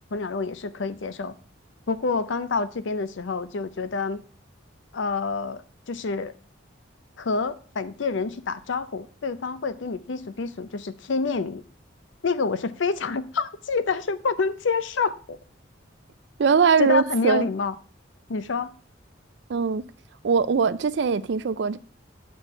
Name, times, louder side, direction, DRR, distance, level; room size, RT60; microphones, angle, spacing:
voice 1, 0.1-1.3 1.9-4.2 4.9-6.3 7.2-11.6 12.2-15.4 16.8-17.7 18.3-18.7, left 4 dB, 70° left, 0.6 m, -27 dB
voice 2, 16.4-17.5 19.5-19.8 20.2-21.8, right 5 dB, 60° right, 0.4 m, -21 dB
6.3 x 5.2 x 5.5 m
head